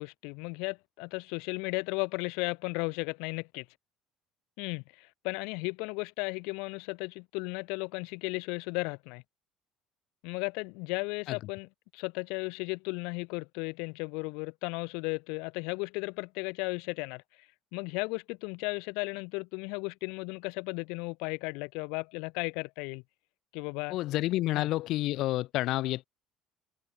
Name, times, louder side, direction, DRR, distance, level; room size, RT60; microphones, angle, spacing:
voice 1, 0.0-3.7 4.6-9.2 10.2-17.2 17.7-23.0 23.5-24.0 24.5-24.7, left 31 dB, 85° left, 4.1 m, -35 dB
voice 2, 23.9-26.1, left 16 dB, 60° left, 2.9 m, -29 dB
cardioid pair, 140°, 0 cm